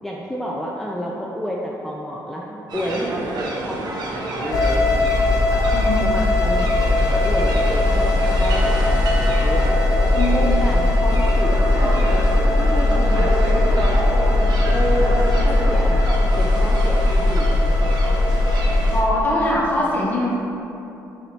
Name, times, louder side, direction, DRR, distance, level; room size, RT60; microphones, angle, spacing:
voice 1, 0.0-5.0 6.0-9.8 10.3-13.9 14.7-18.2, equal, 5° left, -3 dB, 0.3 m, -30 dB
sound 1, 2.7-19.0, right 2 dB, 65° right, 0.6 m, -28 dB
sound 2, 4.5-19.0, left 2 dB, 50° left, 0.6 m, -18 dB
voice 2, 5.7-6.1 10.1-10.5 18.9-20.4, left 1 dB, 20° left, -6 dB, 1.1 m, -22 dB
4.8 x 2.7 x 3.0 m, 2.9 s
cardioid pair, 80°, 8 cm